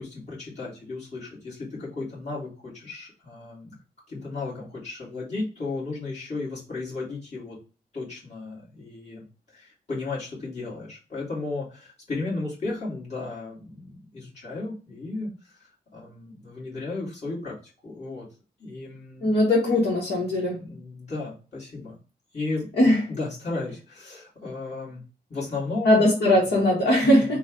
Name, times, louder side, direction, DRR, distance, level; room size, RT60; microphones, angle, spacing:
voice 1, 0.0-3.8 4.1-7.6 7.9-9.2 9.5-17.6 17.8-18.3 18.6-19.3 20.6-21.9 22.3-25.0 25.3-26.0 26.4-26.5 27.0-27.4, left 3 dB, 40° left, -7 dB, 2.3 m, -34 dB
voice 2, 19.2-20.6 22.8-23.0 25.8-27.4, left 1 dB, 70° left, -6 dB, 1.4 m, -20 dB
3.9 x 2.5 x 3.7 m, 0.35 s
cardioid pair, 80°, 17 cm